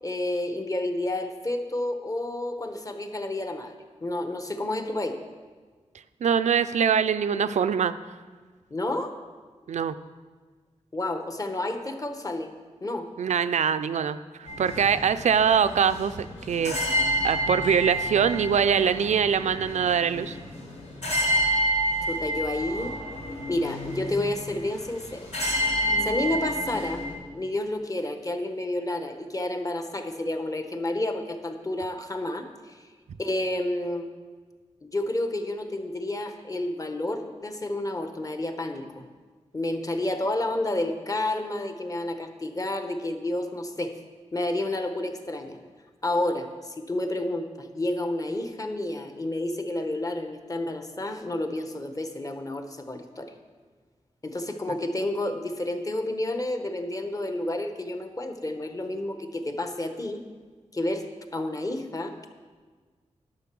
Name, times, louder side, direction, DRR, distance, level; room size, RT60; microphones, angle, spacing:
voice 1, 0.0-3.7 4.0-5.2 8.7-9.1 10.9-12.5 12.8-13.1 22.1-22.9 23.5-25.3 26.0-27.0 27.3-32.8 33.2-34.1 34.8-39.1 39.5-43.9 44.3-45.6 46.0-53.3 54.2-60.2 60.7-62.1, left 1 dB, 30° left, 6 dB, 1.0 m, -30 dB
voice 2, 6.2-7.9 9.7-9.9 13.2-20.4, right 7 dB, 80° right, 12 dB, 0.4 m, -23 dB
sound 1, 14.4-27.2, equal, 80° left, 3.7 m, -29 dB
10.5 x 6.8 x 6.0 m, 1.4 s
wide cardioid pair, 95°, 12 cm